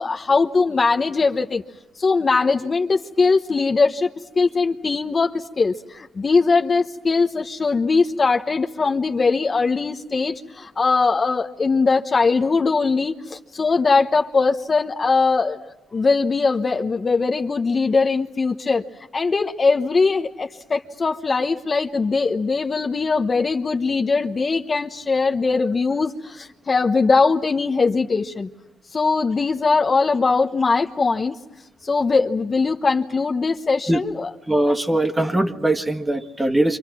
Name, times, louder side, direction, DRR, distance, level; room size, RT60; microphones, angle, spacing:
voice 1, 0.0-1.6 2.0-4.1 4.4-18.8 19.1-28.5 28.9-31.3 31.8-34.3, left 4 dB, 35° left, 4 dB, 1.0 m, -21 dB
voice 2, 34.5-36.8, right 1 dB, 15° right, 7 dB, 1.7 m, -21 dB
28.0 x 26.0 x 6.1 m, 0.97 s
cardioid pair, 90°, 0 cm